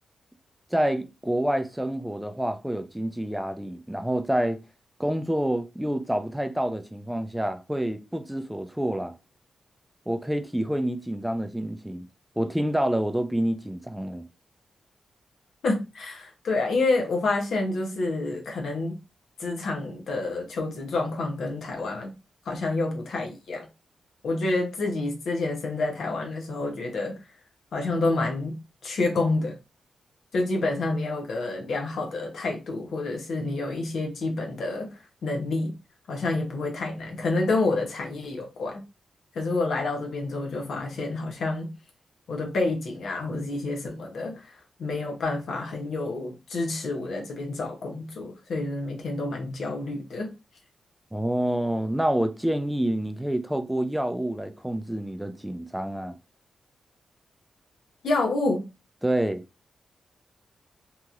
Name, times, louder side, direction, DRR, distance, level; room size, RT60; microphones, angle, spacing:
voice 1, 0.7-4.6 5.0-9.1 10.1-12.1 12.4-14.2 51.1-56.1 59.0-59.4, right 1 dB, 5° right, 0.4 m, -27 dB
voice 2, 15.6-19.0 19.4-22.1 22.5-23.7 24.2-27.2 27.7-29.6 30.3-35.7 36.1-38.8 39.3-41.7 42.3-50.3 58.0-58.7, left 2 dB, 80° left, 0.8 m, -28 dB
2.9 x 2.9 x 2.4 m
cardioid pair, 70°, 0 cm